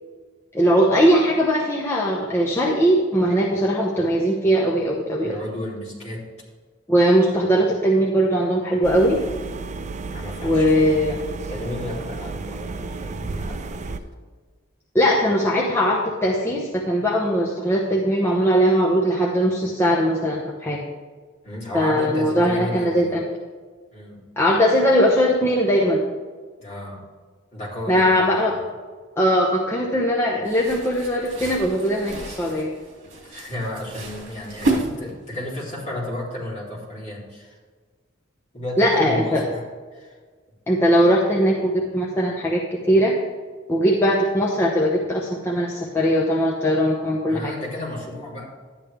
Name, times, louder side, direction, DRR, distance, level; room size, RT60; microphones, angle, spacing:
voice 1, 0.5-5.4 6.9-9.2 10.4-11.2 14.9-20.8 21.7-23.2 24.4-26.0 27.9-28.5 29.2-32.7 38.8-39.4 40.7-42.6 42.9-43.1 43.7-47.5, equal, 15° left, -3 dB, 0.8 m, -20 dB
voice 2, 5.2-6.2 10.0-11.2 11.5-14.0 21.4-23.1 23.9-24.2 26.6-27.0 27.5-28.5 33.2-37.6 38.5-39.6 39.9-40.2 47.3-48.4, left 1 dB, 35° left, -6 dB, 3.3 m, -33 dB
sound 1, 8.8-14.0, right 3 dB, 35° right, 0.4 m, -32 dB
sound 2, 30.4-35.4, right 2 dB, 75° right, 2.4 m, -30 dB
11.5 x 9.7 x 3.4 m, 1.5 s
head